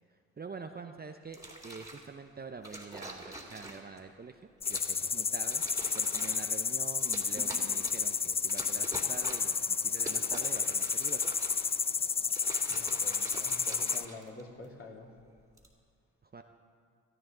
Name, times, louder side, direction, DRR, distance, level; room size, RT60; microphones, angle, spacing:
voice 1, 0.4-4.4 4.7-5.6 5.9-11.3 16.2-16.4, right 4 dB, 25° right, 6 dB, 0.7 m, -46 dB
sound 1, 1.3-2.1 2.6-4.0 4.6-5.0 5.4-6.5 7.0-8.1 8.5-9.6 9.9-11.8 12.2-14.6 15.4-15.7, right 1 dB, 10° right, 2.4 m, -45 dB
sound 2, 4.6-14.0, left 5 dB, 20° left, 0.3 m, -31 dB
voice 2, 12.7-15.1, left 2 dB, 35° left, -2 dB, 3.1 m, -48 dB
19.0 x 13.0 x 3.9 m, 2.1 s
supercardioid pair, 60°, 36 cm